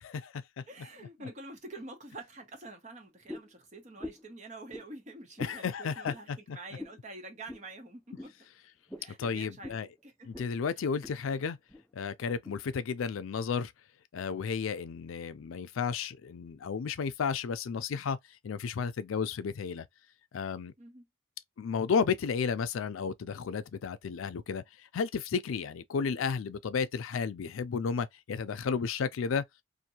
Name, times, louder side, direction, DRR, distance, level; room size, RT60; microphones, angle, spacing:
voice 1, 0.0-0.6 5.4-6.6 9.2-9.9 10.3-11.6 11.9-13.7 14.1-18.2 18.4-19.8 20.3-20.7 21.6-24.6 24.9-29.4, left 6 dB, 90° left, 0.4 m, -33 dB
voice 2, 0.7-8.3 9.0-10.5 10.8-11.0 20.8-21.1, right 2 dB, 35° right, 0.8 m, -47 dB
sound 1, 3.3-3.6 4.0-4.3 4.7-4.9 5.4-5.6 6.0-6.2 6.8-7.0 7.5-7.7 8.2-8.3 8.9-9.1 9.6-9.8 10.3-10.5 10.8-11.2 11.7-11.8 12.4-12.6, left 2 dB, ahead, 0.3 m, -43 dB
2.7 x 2.2 x 2.8 m
head